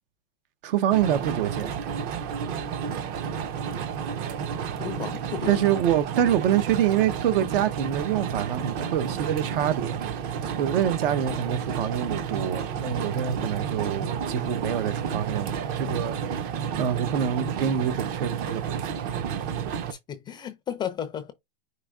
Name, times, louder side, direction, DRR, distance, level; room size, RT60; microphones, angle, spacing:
voice 1, 0.6-1.7 5.5-10.0 10.6-16.5 16.8-18.9, right 10 dB, 70° right, 0.9 m, -26 dB
sound 1, 0.9-19.9, right 7 dB, 30° right, 0.6 m, -31 dB
voice 2, 4.8-5.6 20.1-21.3, left 9 dB, 15° left, 0.4 m, -33 dB
5.0 x 2.6 x 3.6 m
supercardioid pair, 145°, 29 cm